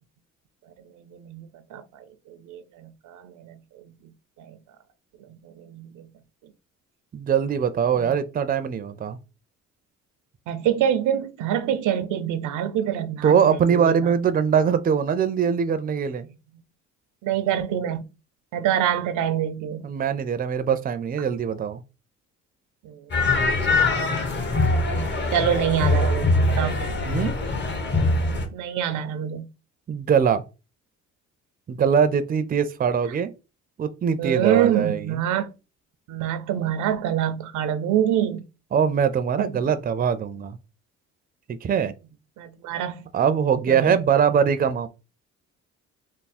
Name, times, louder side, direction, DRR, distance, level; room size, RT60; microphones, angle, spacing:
voice 1, 1.1-3.6 4.4-4.6 5.3-6.1 8.0-8.2 10.5-14.1 17.2-18.0 18.5-19.8 22.8-23.0 23.9-24.2 25.3-26.9 28.5-29.5 34.2-35.5 36.1-38.4 39.4-39.6 42.4-43.1 43.7-44.0, right 10 dB, 90° right, 0.6 m, -26 dB
voice 2, 7.1-9.2 13.2-16.3 19.8-21.8 27.1-27.4 29.9-30.4 31.7-33.3 33.8-35.2 38.7-40.6 41.5-41.9 43.1-44.9, right 7 dB, 30° right, 0.4 m, -22 dB
sound 1, 23.1-28.5, left 2 dB, 35° left, 0.9 m, -22 dB
3.5 x 2.0 x 4.1 m
cardioid pair, 90°, 30 cm